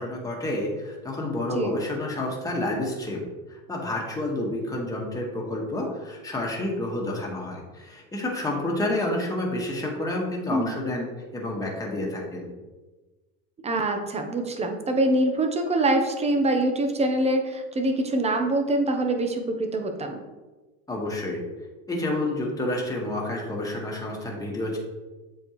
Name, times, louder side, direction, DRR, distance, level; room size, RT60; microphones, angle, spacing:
voice 1, 0.0-3.2 3.5-11.1 11.3-12.5 20.9-21.4 21.9-24.8, left 1 dB, 10° left, -2 dB, 1.6 m, -29 dB
voice 2, 13.6-20.2, right 1 dB, 20° right, 5 dB, 0.9 m, -24 dB
7.7 x 4.6 x 3.1 m, 1.2 s
supercardioid pair, 110°, 33 cm